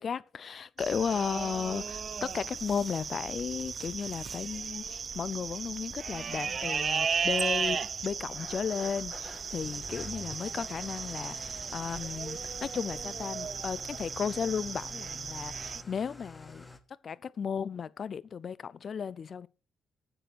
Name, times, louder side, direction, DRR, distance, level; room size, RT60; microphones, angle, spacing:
voice 1, 0.0-16.7 17.0-19.5, left 7 dB, 55° left, 0.5 m, -35 dB
sound 1, 0.8-15.8, right 6 dB, 50° right, 0.4 m, -35 dB
Engine starting / Idling, 8.3-16.8, left 1 dB, 10° left, 1.6 m, -48 dB
7.7 x 6.8 x 5.9 m
hypercardioid pair, 50°, 0 cm